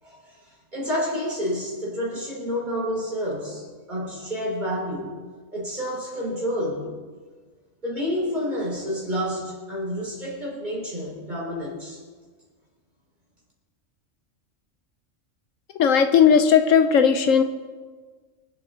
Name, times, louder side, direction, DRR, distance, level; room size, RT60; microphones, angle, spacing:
voice 1, 0.7-5.1 5.5-6.9 7.8-12.0, equal, 35° right, -4 dB, 4.6 m, -29 dB
voice 2, 15.8-17.4, left 7 dB, 80° left, 7 dB, 1.1 m, -17 dB
25.0 x 8.5 x 3.9 m, 1.5 s
omnidirectional pair, 1.3 m